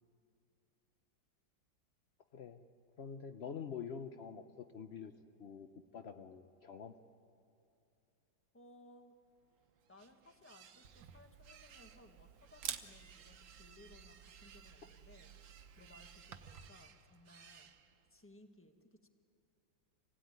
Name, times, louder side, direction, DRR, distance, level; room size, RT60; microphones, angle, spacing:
voice 1, 2.3-2.6 3.0-5.1 5.4-5.7 5.9-6.9, left 6 dB, 80° left, 8 dB, 0.5 m, -46 dB
voice 2, 8.5-9.1 9.9-17.7 18.1-19.1, left 1 dB, 10° left, 6 dB, 1.1 m, -62 dB
sound 1, 9.4-18.3, right 7 dB, 50° right, 1.0 m, -62 dB
Camera, 10.8-16.7, right 9 dB, 75° right, 1.7 m, -51 dB
26.0 x 17.0 x 9.4 m, 2.6 s
omnidirectional pair, 2.1 m